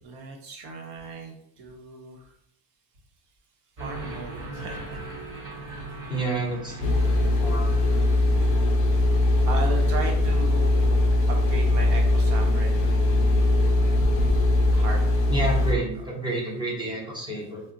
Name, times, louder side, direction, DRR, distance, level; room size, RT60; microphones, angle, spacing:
voice 1, 0.0-2.3 3.8-5.0 5.6-5.9 9.5-15.5, right 3 dB, 65° right, 2 dB, 0.8 m, -37 dB
sound 1, 3.8-9.1, right 2 dB, 40° right, 1.3 m, -39 dB
voice 2, 6.1-6.9 7.4-7.8 15.3-17.6, right 2 dB, 10° right, -4 dB, 0.7 m, -29 dB
sound 2, 6.8-15.7, left 1 dB, 35° left, 0.4 m, -21 dB
2.4 x 2.1 x 3.8 m, 0.69 s
cardioid pair, 150°, 44 cm